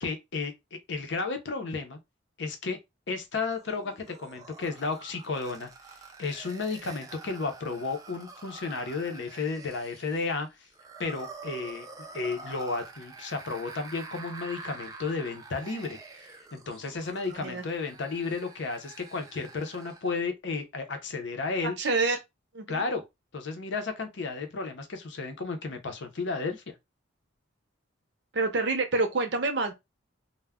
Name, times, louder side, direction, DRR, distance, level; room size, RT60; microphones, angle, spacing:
voice 1, 0.0-0.5 0.9-2.0 2.4-2.8 3.1-5.7 6.2-10.5 11.0-11.9 12.1-21.8 22.7-23.0 23.3-26.7, left 4 dB, 65° left, 0.6 m, -33 dB
sound 1, 3.5-20.1, right 3 dB, 20° right, 0.3 m, -47 dB
voice 2, 17.3-17.6 21.6-22.2 22.5-22.8 28.3-29.7, right 3 dB, 55° right, 0.6 m, -27 dB
2.2 x 2.1 x 3.4 m
head